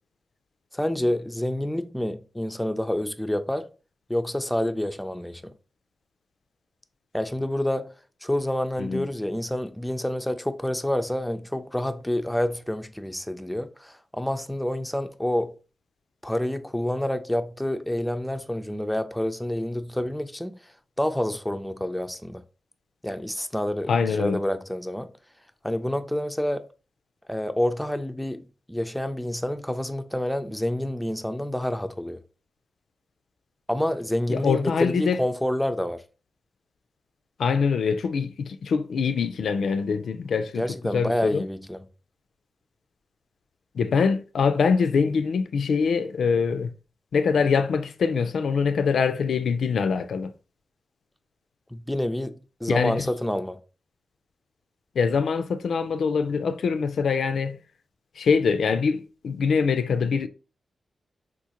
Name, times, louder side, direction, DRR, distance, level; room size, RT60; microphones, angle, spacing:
voice 1, 0.7-3.7 4.1-5.5 7.1-7.9 8.2-15.5 16.2-20.6 21.0-22.4 23.0-25.1 25.6-26.7 27.3-32.2 33.7-36.0 40.6-41.8 51.7-53.6, left 1 dB, 5° left, 0.3 m, -28 dB
voice 2, 23.9-24.4 34.3-35.2 37.4-40.6 40.9-41.4 43.8-46.7 47.1-50.3 52.7-53.1 55.0-57.6 58.2-60.3, left 5 dB, 80° left, 0.3 m, -24 dB
3.6 x 2.5 x 2.9 m
cardioid pair, 70°, 0 cm